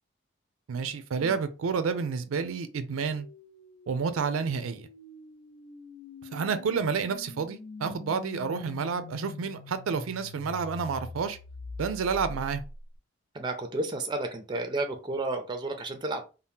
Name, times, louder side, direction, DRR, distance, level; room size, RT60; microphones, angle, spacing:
voice 1, 0.7-3.3 3.9-4.9 6.3-11.4 11.8-12.6, right 5 dB, 90° right, 0.4 m, -30 dB
sound 1, 2.9-13.0, left 3 dB, 75° left, 0.4 m, -44 dB
voice 2, 13.3-16.3, right 2 dB, 20° right, 0.4 m, -32 dB
2.7 x 2.0 x 3.4 m
head